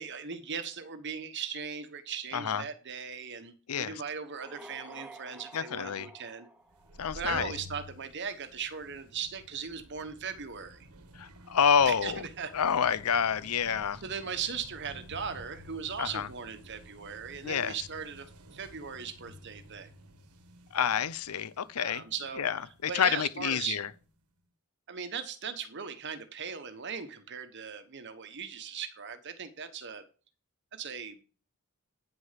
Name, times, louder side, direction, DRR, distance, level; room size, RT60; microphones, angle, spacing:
voice 1, 0.0-6.5 7.1-10.9 11.9-12.5 14.0-19.9 21.8-22.4 22.9-23.8 24.9-30.0 30.7-31.2, right 6 dB, 50° right, 1.1 m, -38 dB
voice 2, 2.3-2.6 3.7-3.9 5.5-6.1 7.0-7.5 11.2-12.2 12.5-14.0 16.0-16.3 17.4-17.7 20.7-22.0 22.4-23.9, left 7 dB, 75° left, 0.6 m, -28 dB
sound 1, 4.2-7.3, right 2 dB, 5° right, 0.6 m, -50 dB
sound 2, 6.7-24.1, equal, 85° right, 1.3 m, -52 dB
9.2 x 6.4 x 5.8 m
head